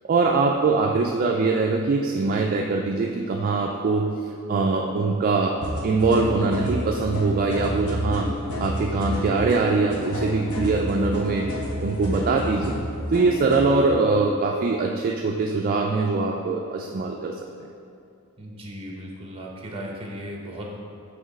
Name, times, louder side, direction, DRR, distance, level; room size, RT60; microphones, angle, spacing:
voice 1, 0.0-4.2 4.5-5.5 5.8-8.3 8.6-11.5 11.8-12.7 13.1-17.3, right 3 dB, 40° right, 0 dB, 0.3 m, -22 dB
sound 1, 5.6-13.7, left 1 dB, 80° left, 1.0 m, -30 dB
voice 2, 18.4-20.8, equal, 25° right, -1 dB, 0.8 m, -36 dB
5.9 x 3.0 x 5.3 m, 2.4 s
head